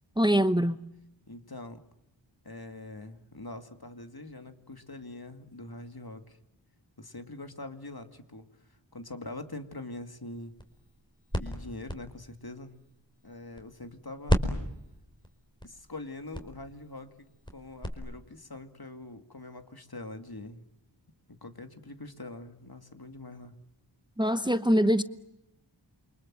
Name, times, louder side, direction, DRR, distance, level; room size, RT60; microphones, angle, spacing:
voice 1, 0.2-0.8 24.2-25.0, equal, 10° right, 1.0 m, -23 dB
voice 2, 1.3-1.8 2.4-6.4 7.0-8.5 8.9-10.5 11.4-12.7 13.2-14.5 15.6-20.6 21.4-23.5, left 2 dB, 55° left, 2.5 m, -43 dB
sound 1, 10.3-13.9 14.3-17.9, equal, 10° left, 4.4 m, -34 dB
28.5 x 24.5 x 7.7 m
wide cardioid pair, 45°, 45 cm